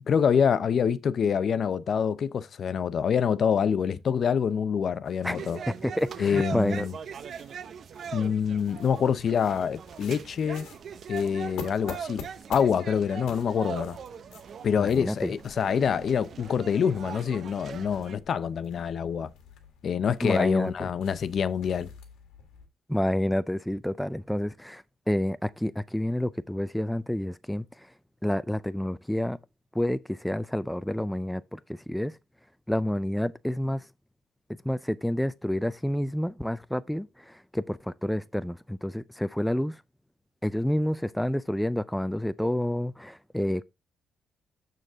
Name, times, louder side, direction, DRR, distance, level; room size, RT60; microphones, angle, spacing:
voice 1, 0.0-5.6 6.2-6.9 8.1-10.7 11.1-12.2 12.5-14.0 14.6-19.3 19.8-21.9, left 7 dB, 55° left, 0.6 m, -26 dB
sound 1, 5.0-22.7, left 6 dB, 90° left, 1.8 m, -49 dB
sound 2, 5.2-18.2, right 7 dB, 55° right, 0.6 m, -41 dB
voice 2, 5.8-6.9 14.8-15.3 20.2-20.7 22.9-27.6 28.2-29.4 29.8-31.6 31.9-32.1 32.7-33.8 34.7-37.1 37.5-39.7 40.4-43.6, left 1 dB, 5° left, 0.4 m, -29 dB
6.6 x 6.5 x 3.6 m
cardioid pair, 90°, 0 cm